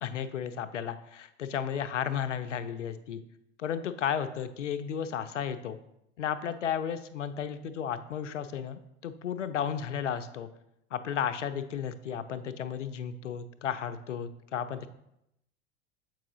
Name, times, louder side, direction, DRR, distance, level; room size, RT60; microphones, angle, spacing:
voice 1, 0.0-3.2 3.6-5.8 6.2-10.5 10.9-14.9, left 8 dB, 85° left, 11 dB, 0.5 m, -33 dB
7.3 x 4.7 x 3.0 m, 0.82 s
figure-of-eight pair, 80°, 35 cm